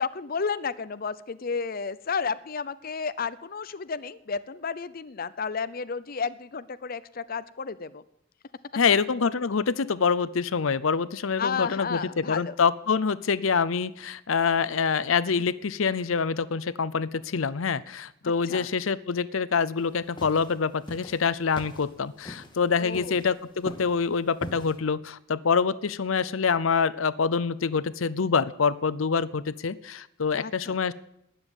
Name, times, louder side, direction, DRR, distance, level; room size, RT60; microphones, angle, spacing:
voice 1, 0.0-8.0 11.4-12.5 18.5-18.7 22.8-23.2 30.4-30.8, left 5 dB, 45° left, 14 dB, 0.6 m, -32 dB
voice 2, 8.8-30.9, left 5 dB, 90° left, 17 dB, 0.7 m, -26 dB
sound 1, 19.8-24.8, left 1 dB, 25° left, 1.9 m, -42 dB
19.0 x 7.3 x 9.9 m, 0.78 s
head